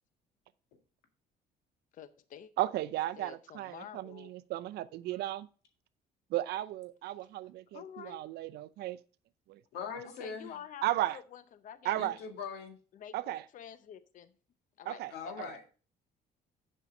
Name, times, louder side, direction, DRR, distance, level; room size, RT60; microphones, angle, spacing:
voice 1, 1.9-2.5 3.2-4.3 7.7-8.2 10.0-12.1 12.9-14.3 14.8-15.5, left 9 dB, 50° left, 0.6 m, -49 dB
voice 2, 2.6-5.5 6.3-9.0 9.5-9.6 10.8-11.2 11.8-12.2 13.1-13.4 14.9-15.1 15.4-15.5, right 15 dB, 75° right, 0.6 m, -35 dB
voice 3, 9.7-10.5 12.0-12.8 15.1-15.6, left 6 dB, 85° left, 1.9 m, -41 dB
7.5 x 5.5 x 5.1 m
cardioid pair, 110°, 17 cm